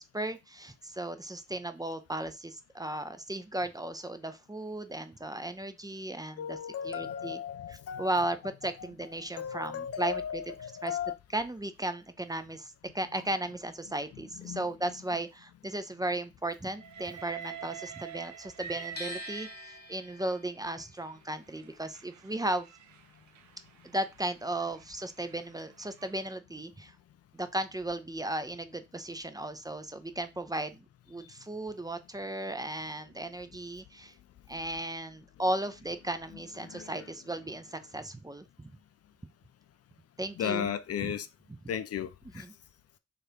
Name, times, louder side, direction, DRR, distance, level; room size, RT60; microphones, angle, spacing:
voice 1, 0.0-6.6 6.8-7.4 7.7-10.4 10.8-11.0 11.3-22.7 23.8-26.9 27.3-34.1 34.5-38.7 40.2-40.7 41.0-41.1 42.3-42.5, right 1 dB, 10° right, 0.6 m, -35 dB
voice 2, 6.4-8.5 8.8-9.1 9.4-11.1 13.2-13.3 14.3-15.0 18.7-18.9 36.3-37.1 40.3-41.3 41.7-42.1 42.3-42.4, left 8 dB, 50° left, 0.5 m, -36 dB
Train, 16.8-20.2 21.0-26.3, right 8 dB, 65° right, 0.6 m, -47 dB
sound 1, 19.0-25.0 25.3-26.6, left 2 dB, 30° left, 0.8 m, -48 dB
3.2 x 2.6 x 4.4 m
hypercardioid pair, 45°, 31 cm